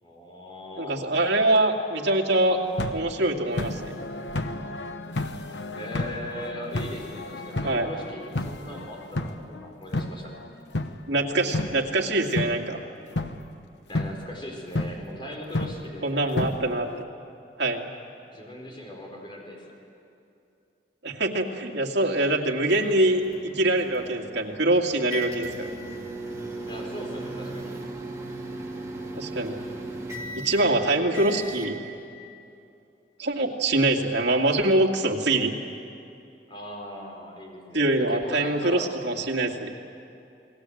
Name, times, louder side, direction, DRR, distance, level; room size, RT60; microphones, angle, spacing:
voice 1, 0.0-1.2 5.7-10.4 13.9-16.4 18.2-19.7 26.7-27.7 36.5-38.9, left 1 dB, 30° left, 0 dB, 4.8 m, -39 dB
voice 2, 0.8-2.6 2.9-4.0 7.6-7.9 11.1-12.8 16.0-17.1 17.6-17.9 21.0-25.8 29.2-29.6 30.3-31.8 33.2-35.5 37.7-39.7, right 2 dB, 80° right, 0 dB, 2.3 m, -24 dB
sound 1, 2.5-12.8 13.1-13.5 13.9-14.3 14.7-15.1 15.5-15.9 16.4-17.0, left 2 dB, 90° left, 1.1 m, -32 dB
sound 2, 22.6-31.7, right 1 dB, 15° right, 2.7 m, -37 dB
29.5 x 20.0 x 7.9 m, 2.7 s
head